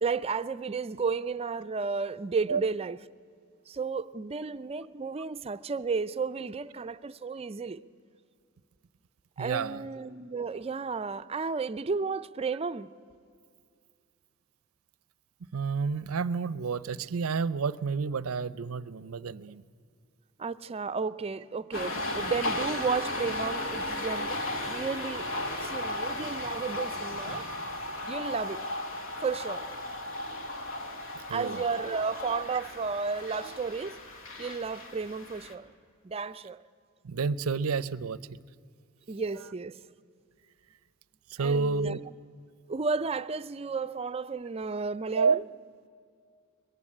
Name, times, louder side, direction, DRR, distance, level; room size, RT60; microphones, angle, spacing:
voice 1, 0.0-3.0 3.7-7.8 9.4-12.9 20.4-24.3 24.6-27.5 28.1-28.6 29.2-29.7 31.3-34.0 34.4-35.7 36.0-36.6 39.1-39.8 41.4-42.0 42.7-45.4, right 4 dB, 30° right, 0.4 m, -33 dB
voice 2, 9.4-9.8 15.5-19.6 31.3-31.6 37.0-38.4 41.3-42.0 45.1-45.4, right 5 dB, 80° right, 0.6 m, -29 dB
sound 1, 21.7-35.5, left 1 dB, 65° left, 1.8 m, -35 dB
21.0 x 15.0 x 9.8 m
head